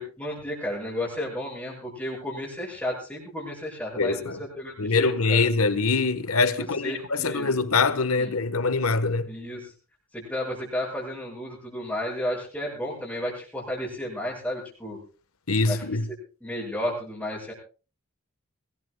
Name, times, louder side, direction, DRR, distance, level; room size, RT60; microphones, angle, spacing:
voice 1, 0.0-5.4 6.6-7.6 8.2-8.3 9.3-9.7 10.1-15.0 15.7-15.8 16.4-17.5, left 1 dB, 10° left, 7.6 m, -33 dB
voice 2, 4.0-4.4 4.8-9.3 15.5-16.1, left 4 dB, 85° left, 1.4 m, -24 dB
24.5 x 20.0 x 2.4 m
head